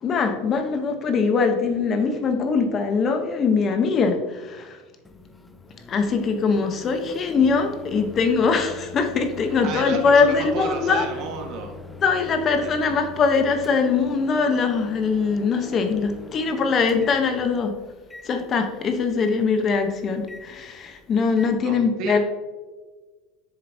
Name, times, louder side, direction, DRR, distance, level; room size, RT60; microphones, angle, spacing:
voice 1, 0.0-4.8 5.9-11.0 12.0-17.7 18.2-22.2, left 5 dB, 35° left, 6 dB, 0.9 m, -22 dB
Microwave oven, 5.0-21.5, left 3 dB, 10° left, 0.5 m, -43 dB
voice 2, 9.6-11.7 12.6-12.7 15.6-15.7 21.6-22.2, right 3 dB, 50° right, 3 dB, 1.5 m, -32 dB
7.5 x 6.8 x 2.7 m, 1.3 s
supercardioid pair, 120°, 0 cm